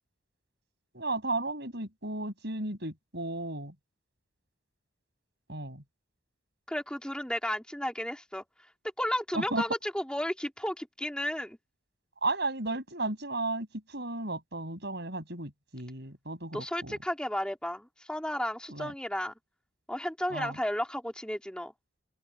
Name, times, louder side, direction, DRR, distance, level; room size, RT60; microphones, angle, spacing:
voice 1, 0.9-3.7 5.5-5.8 9.3-9.6 12.2-17.0 18.7-18.9 20.3-20.6, right 2 dB, 55° right, 6.5 m, -34 dB
voice 2, 6.7-8.4 9.0-11.6 16.5-19.3 19.9-21.7, left 1 dB, 5° left, 2.7 m, -33 dB
open air
head